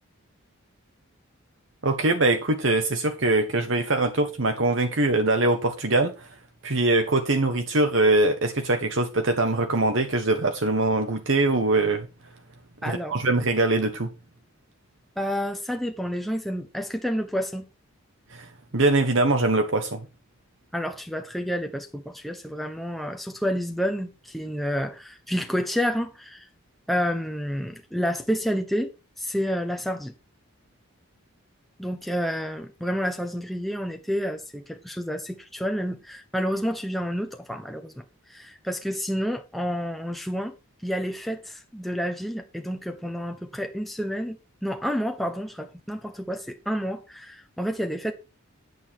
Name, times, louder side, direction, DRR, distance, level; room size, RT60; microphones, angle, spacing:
voice 1, 1.8-6.3 6.6-12.1 12.8-14.1 18.3-20.0, right 2 dB, 60° right, 1.2 m, -23 dB
voice 2, 12.8-13.2 15.2-17.6 20.7-26.4 26.9-28.9 29.2-30.1 31.8-38.0 38.3-40.5 40.8-44.4 44.6-48.1, equal, ahead, 1.0 m, -29 dB
9.3 x 8.0 x 4.6 m
head